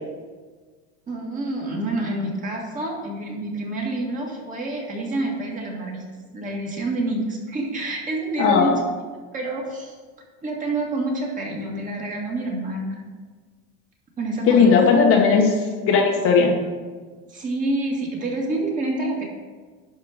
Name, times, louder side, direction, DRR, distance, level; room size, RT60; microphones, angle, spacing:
voice 1, 1.1-6.0 6.3-8.8 9.3-10.0 10.4-13.0 14.2-14.8 17.3-19.2, right 2 dB, 25° right, -2 dB, 2.1 m, -27 dB
voice 2, 8.4-8.7 14.5-16.6, left 5 dB, 40° left, 1 dB, 1.3 m, -17 dB
11.5 x 4.5 x 6.5 m, 1.4 s
cardioid pair, 155°, 34 cm